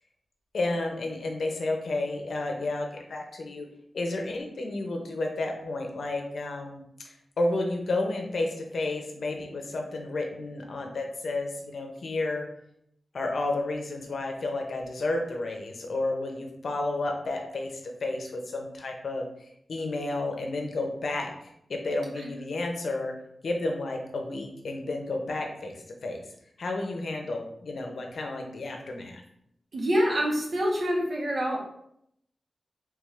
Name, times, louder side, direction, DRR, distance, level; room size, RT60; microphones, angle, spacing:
voice 1, 0.5-3.7 3.9-6.8 7.4-12.5 13.1-21.3 21.7-23.1 23.4-26.2 26.6-29.2, left 2 dB, 70° left, 2 dB, 0.7 m, -31 dB
voice 2, 29.7-31.6, equal, 60° right, -2 dB, 1.1 m, -26 dB
3.6 x 3.3 x 3.2 m, 0.74 s
wide cardioid pair, 105°, 0 cm